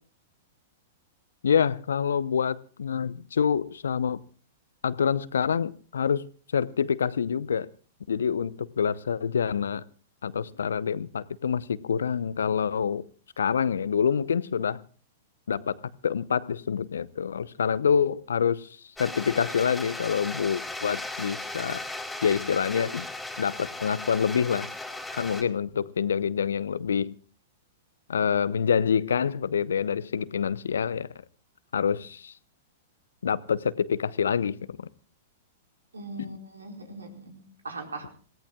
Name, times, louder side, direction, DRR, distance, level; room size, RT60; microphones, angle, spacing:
voice 1, 1.4-4.2 4.8-7.7 8.1-9.8 10.2-13.0 13.4-14.8 15.5-15.8 16.0-18.7 19.0-21.8 22.2-23.1 23.4-24.7 25.1-27.1 28.1-31.1 31.7-32.3 33.2-34.8 36.2-36.4, left 7 dB, 70° left, 0.8 m, -26 dB
sound 1, 19.0-25.4, left 2 dB, 5° left, 3.8 m, -37 dB
voice 2, 35.9-38.2, right 3 dB, 80° right, 4.7 m, -40 dB
27.0 x 17.5 x 2.4 m
figure-of-eight pair, 105°, 0 cm